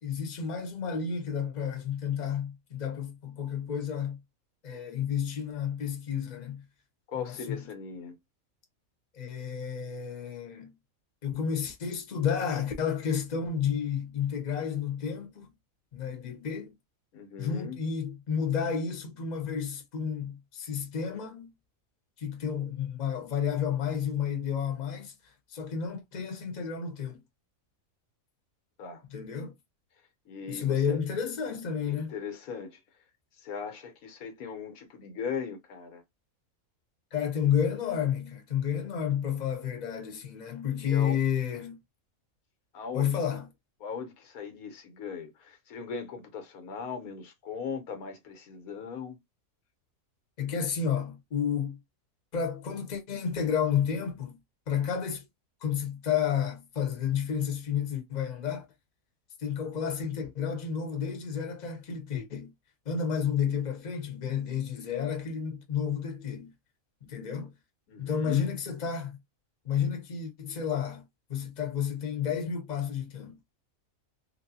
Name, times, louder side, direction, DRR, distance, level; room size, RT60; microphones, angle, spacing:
voice 1, 0.0-4.2 4.6-6.6 7.2-7.6 9.1-10.7 11.2-15.5 15.9-16.7 17.4-21.5 22.2-27.2 29.1-29.5 30.5-32.1 37.1-41.8 42.9-43.5 50.4-51.8 52.3-54.4 54.7-55.2 55.6-58.7 59.4-62.5 62.8-66.5 67.0-67.5 68.0-69.2 69.6-71.0 71.3-73.4, left 7 dB, 35° left, 0.8 m, -31 dB
voice 2, 7.1-8.2 17.1-17.8 28.8-29.0 30.3-31.0 31.9-32.8 33.4-36.0 40.8-41.2 42.7-43.1 43.8-49.2 67.9-68.4, left 6 dB, 85° left, 1.3 m, -38 dB
3.2 x 2.6 x 2.7 m
omnidirectional pair, 1.5 m